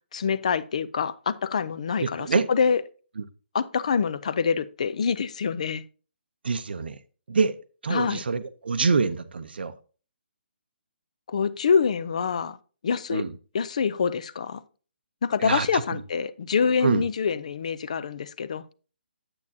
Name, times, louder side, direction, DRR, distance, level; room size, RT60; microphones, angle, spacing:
voice 1, 0.1-2.8 3.5-5.8 7.9-8.2 11.3-12.6 12.8-13.2 13.5-14.6 15.2-18.6, left 6 dB, 35° left, 0.4 m, -25 dB
voice 2, 2.0-2.5 3.2-3.3 6.4-7.0 7.3-7.6 7.8-9.7 13.1-13.3 15.4-16.0 16.8-17.0, right 5 dB, 60° right, 0.7 m, -25 dB
8.7 x 8.3 x 2.7 m
hypercardioid pair, 175°, 6 cm